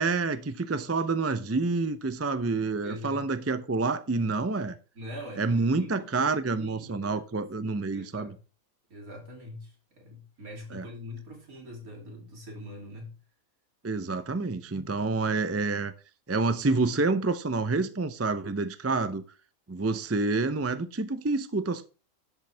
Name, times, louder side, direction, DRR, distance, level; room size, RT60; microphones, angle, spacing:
voice 1, 0.0-4.8 5.4-8.3 10.7-10.8 13.8-15.9 16.3-19.2 19.7-21.9, right 3 dB, 20° right, 0.3 m, -28 dB
voice 2, 2.8-3.3 5.0-8.4 8.9-13.1, equal, 85° right, 3.5 m, -43 dB
11.5 x 7.8 x 3.4 m
omnidirectional pair, 1.5 m